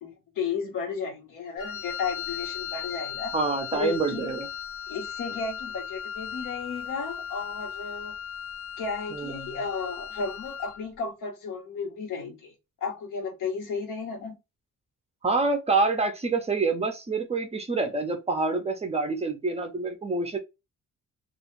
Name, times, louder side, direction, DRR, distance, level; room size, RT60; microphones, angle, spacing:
voice 1, 0.0-3.3 3.7-4.3 4.9-8.1 8.8-12.5 12.8-14.4, left 5 dB, 90° left, 1.0 m, -33 dB
Wind instrument woodwind instrument, 1.6-10.8, left 8 dB, 50° left, 0.5 m, -37 dB
voice 2, 3.3-4.5 9.1-9.6 15.2-20.4, right 3 dB, 20° right, 0.4 m, -27 dB
2.4 x 2.1 x 3.0 m
cardioid pair, 160°, 31 cm